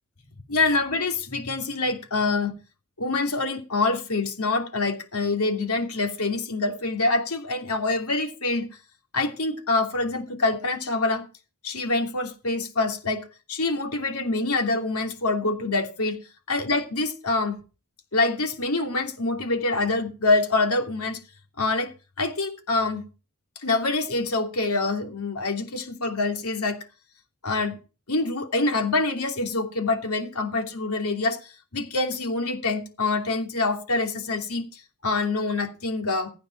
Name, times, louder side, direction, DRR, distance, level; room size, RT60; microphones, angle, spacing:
voice 1, 0.5-2.5 3.0-8.7 9.1-11.2 11.6-16.2 16.5-17.6 18.1-21.2 21.6-21.9 22.2-23.0 23.6-26.8 27.4-27.8 28.1-36.3, left 3 dB, 80° left, 2.9 m, -25 dB
15.5 x 9.3 x 4.6 m
head